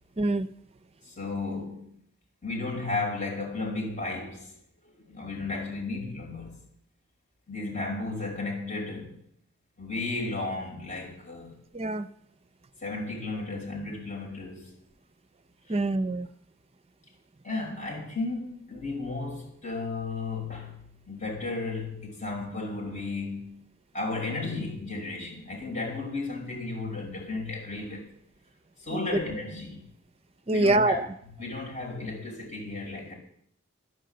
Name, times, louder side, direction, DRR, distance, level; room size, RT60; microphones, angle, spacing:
voice 1, 0.2-0.5 11.7-12.1 15.7-16.3 28.9-29.0 30.5-31.1, right 2 dB, 30° right, 0.6 m, -25 dB
voice 2, 1.0-2.0 2.4-4.5 4.8-6.6 7.5-9.2 9.8-11.6 12.8-14.7 15.7-15.8 17.4-23.6 23.9-28.1 28.8-29.8 30.5-31.0 31.4-33.1, left 3 dB, 40° left, 5.2 m, -34 dB
11.0 x 10.5 x 7.8 m
head